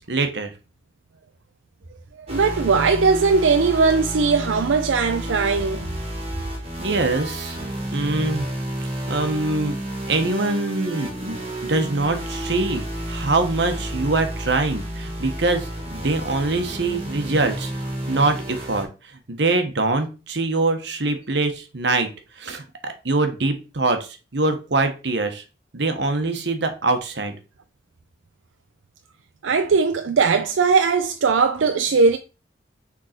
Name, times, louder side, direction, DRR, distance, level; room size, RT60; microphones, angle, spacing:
voice 1, 0.1-0.5 6.8-7.6 7.9-8.5 9.1-9.8 10.1-17.7 18.1-18.9 19.3-22.1 22.4-25.4 25.7-27.3, right 3 dB, 65° right, 1.2 m, -23 dB
voice 2, 2.2-5.9 29.4-32.2, right 4 dB, 85° right, 0.5 m, -19 dB
sound 1, 2.3-18.8, right 1 dB, 30° right, 1.8 m, -31 dB
6.4 x 3.8 x 4.3 m
head